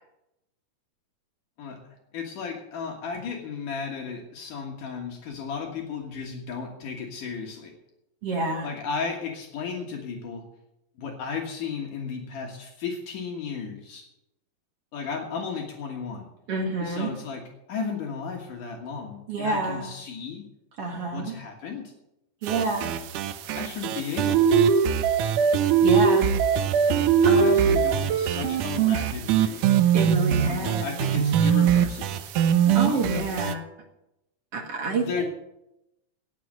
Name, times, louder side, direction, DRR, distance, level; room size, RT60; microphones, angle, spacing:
voice 1, 2.1-7.7 8.6-10.4 11.0-14.0 14.9-16.3 16.8-17.4 17.7-20.4 21.1-21.9 23.6-24.7 25.2-25.3 27.2-29.6 30.3-32.2 32.6-33.3 34.9-35.2, left 5 dB, 70° left, 0 dB, 3.0 m, -34 dB
voice 2, 8.2-8.7 16.5-17.1 19.3-19.8 20.8-21.3 22.4-23.0 25.8-26.3 27.2-27.8 29.9-30.9 32.8-33.7 34.5-35.2, right 3 dB, 50° right, 2 dB, 2.2 m, -28 dB
sound 1, 22.4-33.5, right 7 dB, 75° right, 2.2 m, -22 dB
18.5 x 6.4 x 7.7 m, 0.87 s
omnidirectional pair, 4.0 m